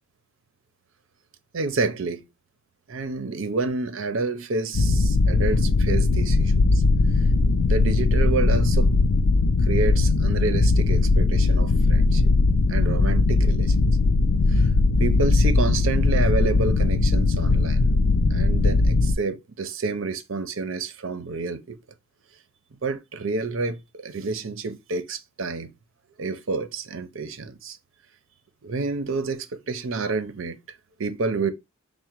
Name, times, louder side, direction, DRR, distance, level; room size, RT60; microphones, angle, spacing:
voice 1, 1.5-2.3 2.9-6.8 7.6-8.9 9.6-12.3 12.7-14.0 14.5-14.7 15.0-17.9 18.3-21.8 22.8-25.7 26.2-27.8 28.6-30.6 31.0-31.5, right 4 dB, 70° right, 0.6 m, -29 dB
sound 1, 4.7-19.2, left 3 dB, 80° left, 0.4 m, -19 dB
3.7 x 2.1 x 4.4 m
head